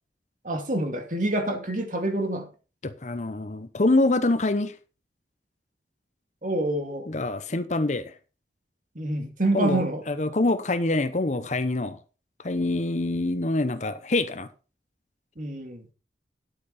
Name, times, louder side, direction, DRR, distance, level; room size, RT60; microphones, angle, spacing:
voice 1, 0.4-2.5 6.4-7.1 9.0-10.0 15.4-15.8, right 1 dB, 45° right, 2.5 m, -27 dB
voice 2, 2.8-4.7 7.1-8.1 9.5-12.0 12.4-14.5, left 2 dB, 40° left, 0.8 m, -25 dB
11.0 x 8.4 x 4.2 m
head